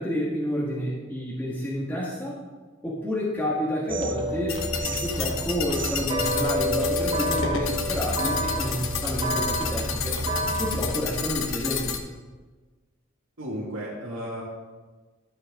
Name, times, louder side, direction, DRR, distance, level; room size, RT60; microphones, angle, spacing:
voice 1, 0.0-2.4 2.8-10.2 10.6-11.9, equal, 10° left, -7 dB, 1.7 m, -29 dB
sound 1, 3.9-10.9, equal, 25° right, 0.9 m, -29 dB
sound 2, 4.5-12.0, left 6 dB, 75° left, 0.9 m, -31 dB
voice 2, 13.4-14.4, equal, 85° right, -9 dB, 2.1 m, -33 dB
12.0 x 7.7 x 3.7 m, 1.3 s
head